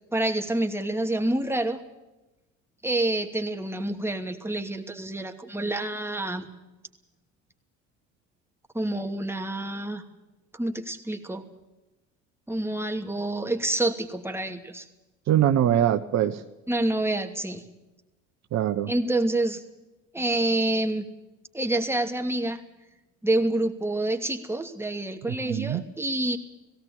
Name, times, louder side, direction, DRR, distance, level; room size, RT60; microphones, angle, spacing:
voice 1, 0.1-1.8 2.8-6.5 8.7-10.0 10.5-11.4 12.5-14.9 16.7-17.6 18.9-19.6 20.1-21.0 21.5-22.6 23.2-26.4, right 1 dB, 5° right, 5 dB, 2.7 m, -27 dB
voice 2, 15.3-16.4 18.5-18.9 25.4-25.8, right 11 dB, 50° right, 8 dB, 1.2 m, -23 dB
17.5 x 17.0 x 8.9 m, 1.0 s
hypercardioid pair, 65°, 35 cm